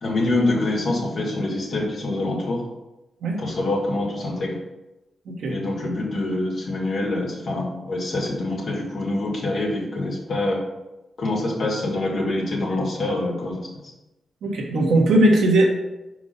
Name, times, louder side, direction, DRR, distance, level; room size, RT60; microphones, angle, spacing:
voice 1, 0.0-2.6 3.4-4.6 5.5-10.6 11.2-13.7, left 2 dB, 70° left, -2 dB, 2.1 m, -25 dB
voice 2, 5.3-5.6 14.4-15.7, right 1 dB, 85° right, -1 dB, 1.5 m, -18 dB
5.3 x 4.7 x 5.6 m, 1.0 s
cardioid pair, 55°, 0 cm